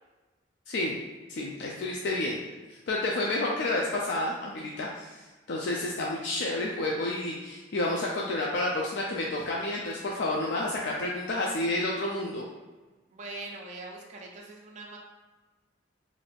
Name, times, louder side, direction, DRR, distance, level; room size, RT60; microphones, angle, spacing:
voice 1, 1.3-2.4 2.9-12.4, left 2 dB, 60° left, -3 dB, 0.3 m, -30 dB
voice 2, 13.1-15.0, right 2 dB, 40° right, -2 dB, 0.4 m, -43 dB
2.5 x 2.3 x 3.3 m, 1.2 s
head